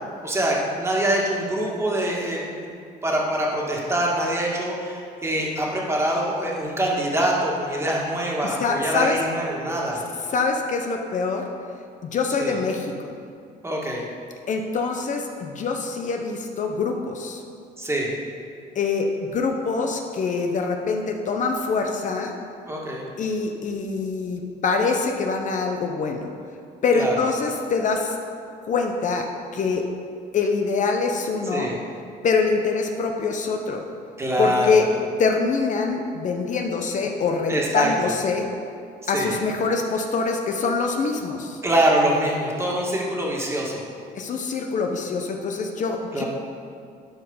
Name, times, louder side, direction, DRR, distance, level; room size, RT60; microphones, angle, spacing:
voice 1, 0.2-10.0 12.4-12.6 13.6-14.0 17.8-18.1 22.7-23.0 26.9-27.2 31.5-31.8 34.2-34.8 37.5-37.9 39.0-39.3 41.6-43.9 46.1-46.3, right 1 dB, 15° right, -3 dB, 1.9 m, -24 dB
voice 2, 8.4-9.2 10.3-11.4 12.0-12.9 14.5-17.4 18.7-19.1 19.3-22.3 23.2-26.3 26.8-28.2 28.6-29.3 29.5-29.8 30.3-31.7 32.2-33.8 34.4-34.9 35.2-38.5 39.1-41.6 44.1-46.2, left 4 dB, 45° left, 3 dB, 0.8 m, -24 dB
11.5 x 4.8 x 5.5 m, 2.4 s
cardioid pair, 110°, 17 cm